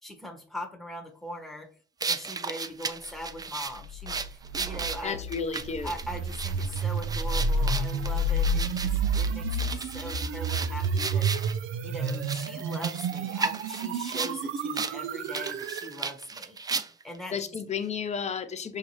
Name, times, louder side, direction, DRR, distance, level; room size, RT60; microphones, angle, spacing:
voice 1, 0.0-1.7 2.1-5.2 5.8-11.3 11.8-16.6 17.0-17.4, equal, ahead, 3 dB, 1.0 m, -41 dB
sound 1, 2.0-11.5 12.0-14.4 14.7-14.9 15.2-17.2, right 4 dB, 20° right, 0.3 m, -35 dB
sound 2, 3.8-15.9, right 2 dB, 85° right, 0.5 m, -30 dB
voice 2, 5.0-5.9 17.3-18.8, left 6 dB, 35° left, 10 dB, 0.6 m, -32 dB
4.9 x 2.7 x 3.1 m, 0.42 s
cardioid pair, 90°, 20 cm